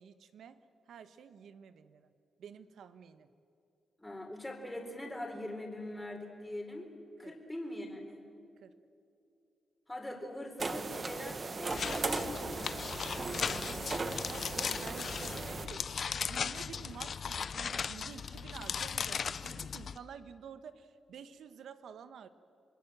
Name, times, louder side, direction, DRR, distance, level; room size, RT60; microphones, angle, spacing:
voice 1, 0.0-2.1 2.4-3.3 7.2-7.3 8.6-8.7 13.4-15.9 16.2-22.3, right 7 dB, 80° right, 12 dB, 1.2 m, -50 dB
voice 2, 4.0-6.9 7.2-8.2 9.9-12.7, left 1 dB, 10° left, 2 dB, 3.9 m, -42 dB
sound 1, 10.6-15.7, right 3 dB, 35° right, 1.4 m, -37 dB
sound 2, 11.7-20.0, left 6 dB, 55° left, 0.7 m, -37 dB
27.0 x 21.5 x 7.5 m, 2.7 s
cardioid pair, 100°, 0 cm